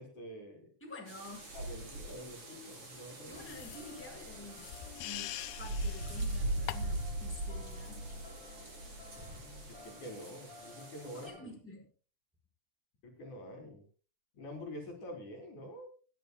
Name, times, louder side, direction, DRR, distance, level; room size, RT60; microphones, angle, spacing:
voice 1, 0.0-0.7 1.5-3.5 9.1-11.5 13.0-13.8 14.3-15.9, equal, 55° left, 1 dB, 4.3 m, -47 dB
voice 2, 0.8-1.6 3.3-4.7 5.0-8.1 11.1-11.9, left 2 dB, 5° left, -1 dB, 4.7 m, -49 dB
sound 1, 1.1-11.3, right 1 dB, 40° right, 4.7 m, -41 dB
sound 2, 3.3-7.1, left 13 dB, 85° left, 2.5 m, -45 dB
sound 3, 3.4-11.5, left 5 dB, 35° left, 2.8 m, -56 dB
26.0 x 10.5 x 2.2 m, 0.36 s
omnidirectional pair, 4.2 m